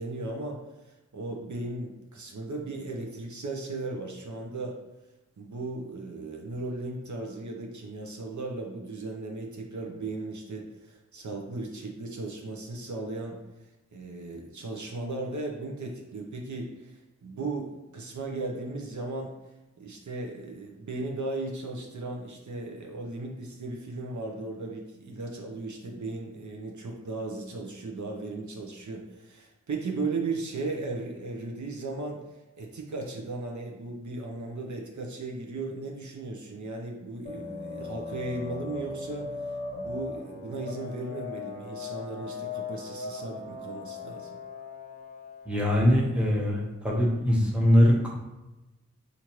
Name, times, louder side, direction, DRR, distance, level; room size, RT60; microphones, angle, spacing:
voice 1, 0.0-4.8 5.4-13.4 13.9-19.3 19.8-32.2 32.6-44.3, right 3 dB, 70° right, 0 dB, 0.6 m, -36 dB
sound 1, 37.3-46.5, left 4 dB, 30° left, 0.7 m, -39 dB
voice 2, 45.5-48.2, equal, 5° right, -3 dB, 1.0 m, -22 dB
4.3 x 2.5 x 3.0 m, 1.0 s
wide cardioid pair, 45°, 30 cm